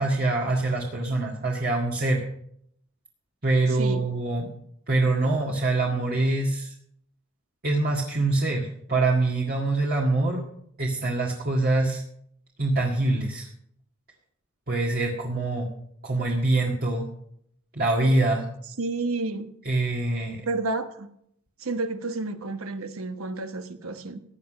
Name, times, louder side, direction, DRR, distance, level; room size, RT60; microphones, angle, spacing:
voice 1, 0.0-2.2 3.4-4.5 4.9-6.7 7.6-10.4 10.8-12.0 12.6-13.5 14.7-15.7 16.0-17.1 17.7-18.5 19.6-20.4, right 2 dB, 45° right, -2 dB, 1.8 m, -24 dB
voice 2, 18.8-19.5 20.5-21.1 21.6-24.2, right 3 dB, 80° right, 8 dB, 1.3 m, -30 dB
16.0 x 9.8 x 5.2 m, 0.70 s
head